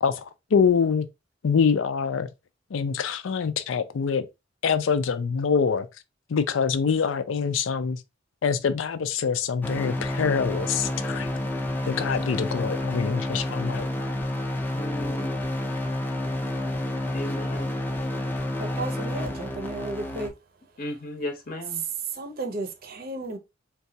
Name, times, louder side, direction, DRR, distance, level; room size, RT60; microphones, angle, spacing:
voice 1, 0.0-1.1 1.4-2.3 2.7-4.3 4.6-5.9 6.3-8.0 8.4-11.3 11.9-13.9, left 6 dB, 85° left, 0.4 m, -25 dB
sound 1, 9.6-20.3, left 1 dB, 10° left, 0.5 m, -29 dB
voice 2, 14.7-15.5 17.1-17.8 20.8-21.8, left 1 dB, 45° left, 0.7 m, -35 dB
voice 3, 18.6-20.4 22.1-23.4, right 2 dB, 50° right, 0.6 m, -34 dB
3.9 x 2.3 x 2.7 m
head